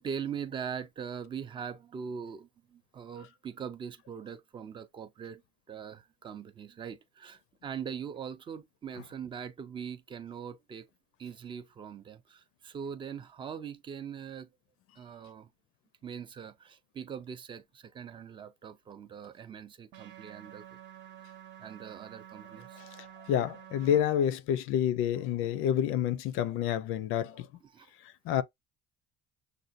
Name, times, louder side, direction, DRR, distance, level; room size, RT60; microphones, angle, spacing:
voice 1, 0.0-5.4 5.7-10.9 11.2-14.5 15.0-15.5 16.0-20.6 21.6-22.8 27.6-27.9 28.3-28.4, right 7 dB, 25° right, 0.4 m, -41 dB
sound 1, 19.9-24.0, right 11 dB, 55° right, 0.7 m, -50 dB
voice 2, 22.8-27.5 28.2-28.4, left 10 dB, 75° left, 0.6 m, -29 dB
6.5 x 2.3 x 2.5 m
cardioid pair, 175°, 21 cm